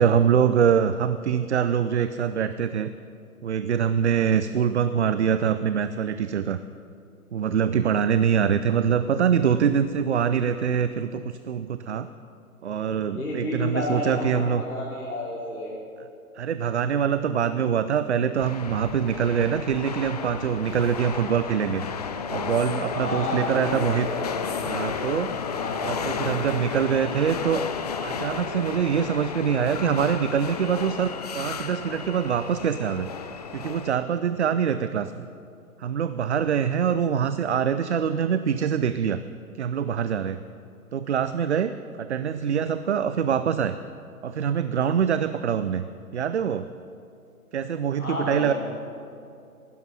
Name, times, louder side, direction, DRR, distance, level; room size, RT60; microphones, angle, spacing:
voice 1, 0.0-2.9 3.4-6.6 7.3-12.1 12.6-14.6 16.3-21.8 22.3-24.1 24.6-25.3 25.8-27.7 28.0-33.1 33.5-35.2 35.8-39.2 39.5-40.4 40.9-43.8 44.2-45.8 46.1-46.7 47.5-48.5, right 8 dB, 50° right, 12 dB, 0.5 m, -24 dB
voice 2, 13.1-15.7 22.9-24.6 25.4-26.7 48.0-48.5, left 2 dB, 75° left, -6 dB, 3.1 m, -32 dB
sound 1, 18.4-34.0, left 6 dB, 25° left, 0.6 m, -32 dB
15.5 x 12.0 x 5.5 m, 2.5 s
figure-of-eight pair, 125°, 45 cm